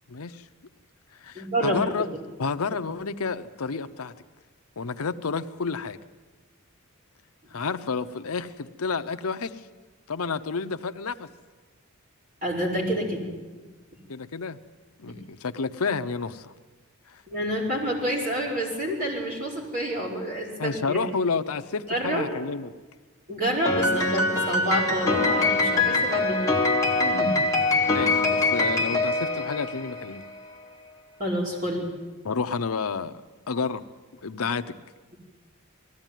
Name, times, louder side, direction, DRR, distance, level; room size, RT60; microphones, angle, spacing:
voice 1, 0.1-0.5 1.2-2.1 2.4-4.1 4.8-6.0 7.5-9.6 10.1-11.3 14.1-14.6 15.0-16.5 17.1-17.2 20.6-22.7 27.8-30.3 32.2-33.2 33.5-33.8 34.2-34.7, left 4 dB, 85° left, 10 dB, 0.8 m, -30 dB
voice 2, 1.4-1.8 12.4-13.3 15.1-15.2 17.3-21.0 21.9-22.3 23.3-26.6 27.0-27.3 31.2-31.9, equal, 40° right, -3 dB, 5.2 m, -28 dB
Piano, 23.7-30.2, left 3 dB, 15° left, 1.6 m, -23 dB
19.5 x 15.0 x 9.2 m, 1.3 s
head